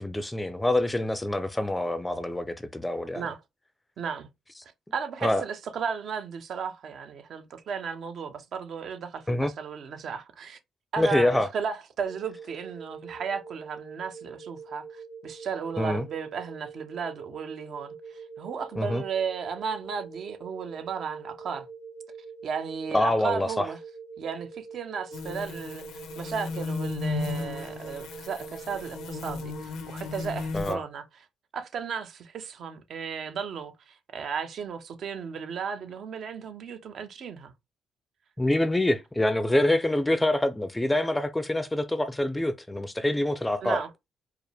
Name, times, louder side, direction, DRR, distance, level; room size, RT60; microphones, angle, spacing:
voice 1, 0.0-3.2 5.2-5.4 9.3-9.5 11.0-11.5 15.8-16.1 18.8-19.0 22.9-23.6 30.5-30.8 38.4-43.8, left 1 dB, 10° left, 0.5 m, -25 dB
voice 2, 4.0-4.3 4.9-10.6 10.9-21.7 22.4-23.8 24.2-25.8 26.2-31.0 31.5-37.5 43.6-43.9, right 6 dB, 65° right, 0.8 m, -35 dB
sound 1, 12.0-29.6, right 5 dB, 85° right, 2.3 m, -44 dB
sound 2, 25.1-30.7, left 3 dB, 85° left, 0.8 m, -35 dB
4.7 x 2.1 x 3.3 m
cardioid pair, 90°, 0 cm